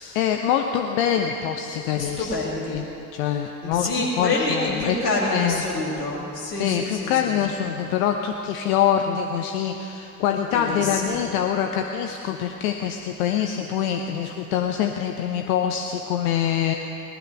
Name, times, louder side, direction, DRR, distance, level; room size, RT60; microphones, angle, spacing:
voice 1, 0.1-2.3 2.7-2.8 3.1-3.9 4.2-5.0 5.3-5.9 6.5-16.7, left 9 dB, 65° left, 4 dB, 0.9 m, -24 dB
voice 2, 2.0-2.8 3.6-7.4 10.5-11.2, left 2 dB, 80° left, -4 dB, 2.6 m, -27 dB
18.5 x 12.5 x 5.5 m, 2.8 s
figure-of-eight pair, 50°, 46 cm